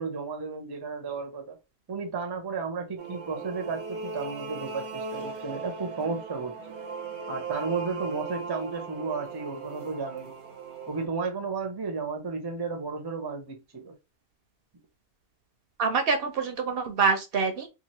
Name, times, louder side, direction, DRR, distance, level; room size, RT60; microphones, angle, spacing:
voice 1, 0.0-1.6 1.9-6.5 7.3-10.3 10.9-13.9, right 4 dB, 30° right, 0.5 m, -33 dB
sound 1, 3.0-11.1, right 4 dB, 90° right, 1.1 m, -38 dB
voice 2, 15.8-17.7, right 5 dB, 65° right, 0.7 m, -25 dB
2.9 x 2.3 x 2.9 m
omnidirectional pair, 1.1 m